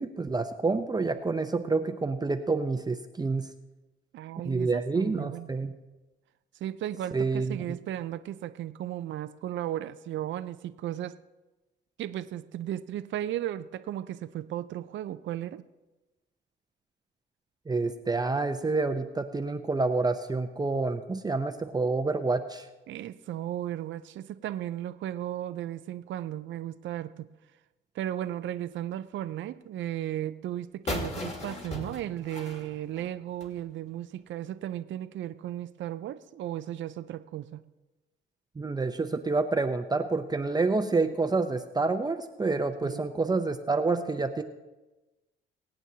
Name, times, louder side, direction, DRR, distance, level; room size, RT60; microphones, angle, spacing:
voice 1, 0.0-3.5 4.4-5.7 7.1-7.6 17.7-22.7 38.6-44.4, right 3 dB, 20° right, 7 dB, 0.6 m, -28 dB
voice 2, 4.1-5.5 6.6-11.1 12.0-15.6 22.9-27.3 27.9-37.6 42.8-43.0, right 12 dB, 70° right, 13 dB, 0.5 m, -35 dB
sound 1, 30.9-33.6, left 2 dB, 35° left, 2.2 m, -37 dB
23.0 x 8.8 x 2.8 m, 1.1 s
cardioid pair, 90°, 20 cm